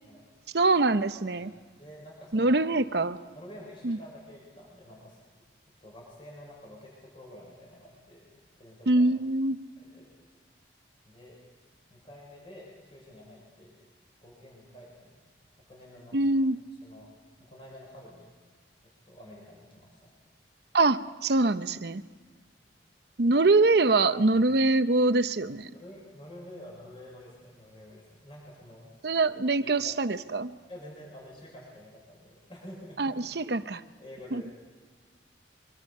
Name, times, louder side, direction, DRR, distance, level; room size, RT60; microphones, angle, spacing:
voice 1, 0.5-1.5 2.3-3.2 3.8-4.0 8.9-9.6 16.1-16.6 20.7-22.0 23.2-25.7 29.0-30.6 33.0-33.8 34.3-34.6, right 2 dB, 60° right, 11 dB, 0.8 m, -24 dB
voice 2, 1.8-2.6 3.2-5.2 5.8-9.1 9.8-10.1 11.0-11.4 11.9-13.8 14.2-15.2 15.7-16.2 16.8-17.1 17.4-18.3 19.0-20.2 24.3-24.4 25.7-29.0 29.6-30.0 30.7-33.2 34.0-34.6, equal, 30° left, -3 dB, 6.4 m, -49 dB
24.5 x 23.5 x 5.5 m, 1.5 s
head